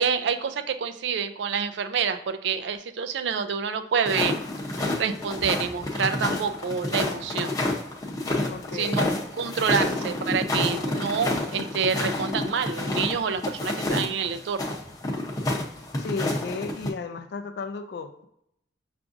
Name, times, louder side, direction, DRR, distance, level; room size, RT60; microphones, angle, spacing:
voice 1, 0.0-4.4 4.7-7.5 8.7-9.1 9.4-14.8, right 6 dB, 70° right, 9 dB, 0.4 m, -27 dB
sound 1, 4.1-16.9, left 2 dB, 20° left, 0.6 m, -29 dB
voice 2, 8.5-9.2 16.0-18.3, left 4 dB, 60° left, 7 dB, 0.3 m, -34 dB
5.8 x 2.5 x 2.5 m, 0.76 s
head